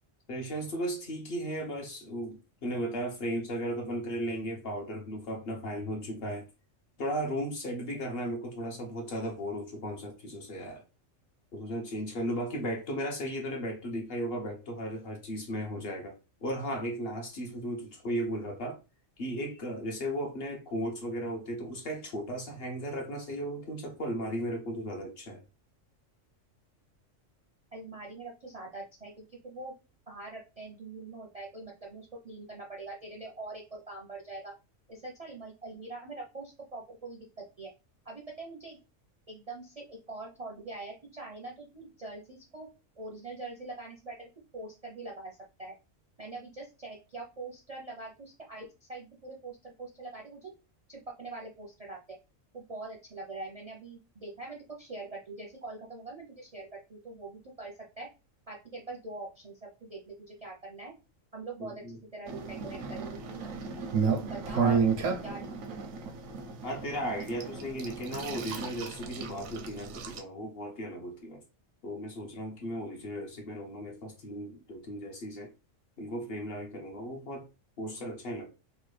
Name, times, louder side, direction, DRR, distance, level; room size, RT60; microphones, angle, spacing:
voice 1, 0.3-6.5 7.0-10.8 11.5-18.8 19.2-25.4 61.6-62.0 64.5-64.9 66.6-71.4 71.8-75.5 76.0-77.5 77.8-78.5, equal, 55° left, 0.8 m, -36 dB
voice 2, 27.7-29.7 30.1-34.5 34.9-37.2 37.6-37.7 38.0-38.8 39.3-42.7 43.0-45.3 45.6-45.7 46.2-50.5 50.9-52.2 52.5-58.1 58.5-60.9 61.3-63.4 64.2-64.8 65.2-65.4, right 2 dB, 45° right, 0.5 m, -43 dB
sound 1, 62.3-70.2, right 6 dB, 85° right, 1.0 m, -33 dB
3.1 x 2.2 x 3.1 m
omnidirectional pair, 1.4 m